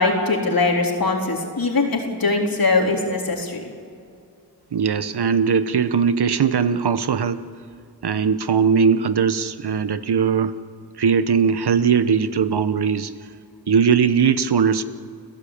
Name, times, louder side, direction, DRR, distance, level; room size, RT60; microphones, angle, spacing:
voice 1, 0.0-3.6, left 3 dB, 55° left, 1 dB, 3.7 m, -21 dB
voice 2, 4.7-7.4 8.0-10.6 11.0-13.1 13.7-14.8, right 6 dB, 70° right, 13 dB, 1.1 m, -19 dB
29.5 x 15.5 x 8.7 m, 2.3 s
cardioid pair, 60°, 41 cm